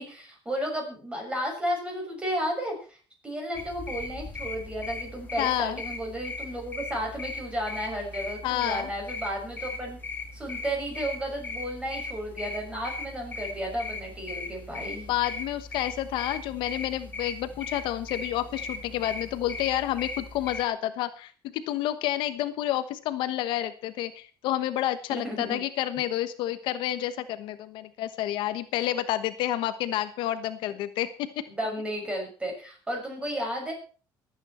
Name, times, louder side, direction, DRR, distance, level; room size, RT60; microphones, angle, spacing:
voice 1, 0.0-3.0 3.2-10.0 10.3-15.1 25.1-25.6 31.5-33.7, equal, 15° right, 1 dB, 6.5 m, -33 dB
sound 1, 3.5-20.6, left 3 dB, 20° left, 2.5 m, -38 dB
voice 2, 5.4-5.8 8.4-8.9 15.1-31.3, left 13 dB, 80° left, 11 dB, 1.1 m, -29 dB
23.0 x 8.9 x 4.4 m, 0.39 s
cardioid pair, 140°, 8 cm